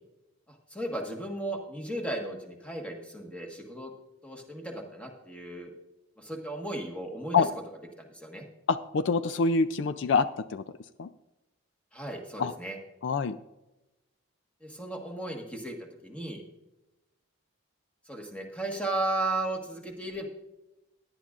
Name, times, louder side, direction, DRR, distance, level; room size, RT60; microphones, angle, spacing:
voice 1, 0.5-3.9 4.2-5.7 6.2-7.4 8.0-8.5 11.9-12.8 14.6-16.4 18.1-20.3, right 2 dB, 5° left, 1 dB, 1.5 m, -35 dB
voice 2, 8.7-10.6 11.0-11.1 12.4-12.5 13.0-13.4, left 4 dB, 60° left, 13 dB, 0.4 m, -25 dB
17.0 x 10.5 x 2.5 m, 0.99 s
head